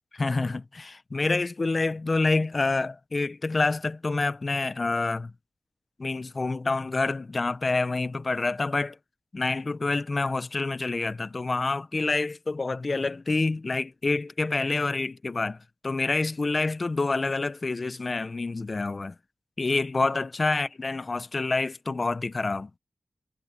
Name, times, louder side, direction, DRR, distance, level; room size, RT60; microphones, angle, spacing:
voice 1, 0.1-5.3 6.0-9.0 9.3-15.6 15.8-19.1 19.6-22.7, left 3 dB, 45° left, 0.8 m, -27 dB
wide cardioid pair, 80°, 0 cm